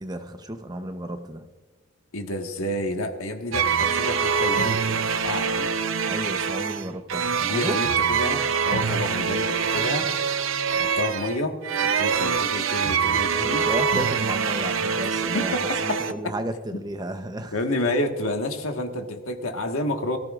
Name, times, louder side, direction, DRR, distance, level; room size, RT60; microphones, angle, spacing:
voice 1, 0.0-1.5 6.1-7.7 13.4-15.5 15.8-17.5, right 1 dB, 20° right, 8 dB, 0.8 m, -33 dB
voice 2, 2.1-5.7 7.4-10.1 10.7-13.7 15.3-16.0 17.5-20.2, left 1 dB, 90° left, 4 dB, 1.5 m, -29 dB
sound 1, 3.5-16.1, right 6 dB, 70° right, 0.7 m, -24 dB
23.0 x 14.0 x 2.5 m, 1.3 s
head